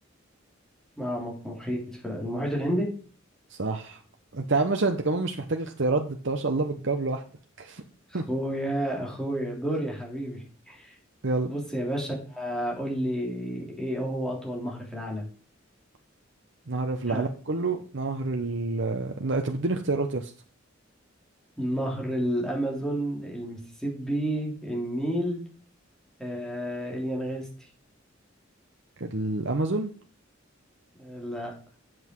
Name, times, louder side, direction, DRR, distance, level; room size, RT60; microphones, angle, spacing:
voice 1, 1.0-3.0 8.1-10.9 11.4-15.3 17.1-17.3 21.6-25.4 26.2-27.5 31.0-31.6, equal, 5° left, -2 dB, 3.2 m, -31 dB
voice 2, 3.5-4.0 4.3-7.2 7.6-7.8 8.1-8.2 11.2-11.5 16.7-20.3 29.0-29.9, right 3 dB, 65° right, 4 dB, 0.9 m, -28 dB
8.1 x 7.7 x 4.6 m, 0.40 s
head